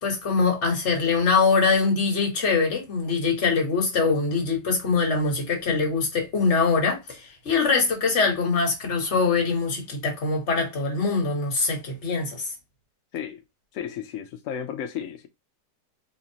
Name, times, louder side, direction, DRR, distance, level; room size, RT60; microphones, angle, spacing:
voice 1, 0.0-12.5, left 4 dB, 45° left, 1.4 m, -23 dB
voice 2, 13.7-15.3, left 8 dB, 75° left, 0.7 m, -33 dB
4.2 x 2.9 x 2.8 m
omnidirectional pair, 1.9 m